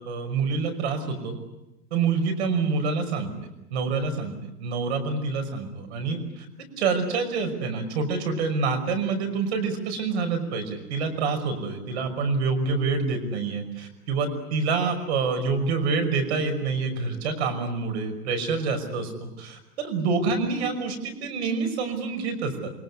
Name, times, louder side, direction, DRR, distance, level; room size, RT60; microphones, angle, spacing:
voice 1, 0.0-1.4 1.9-3.3 3.7-6.5 6.8-22.7, right 4 dB, 45° right, 6 dB, 5.7 m, -27 dB
29.0 x 20.5 x 9.9 m, 0.93 s
supercardioid pair, 175°, 46 cm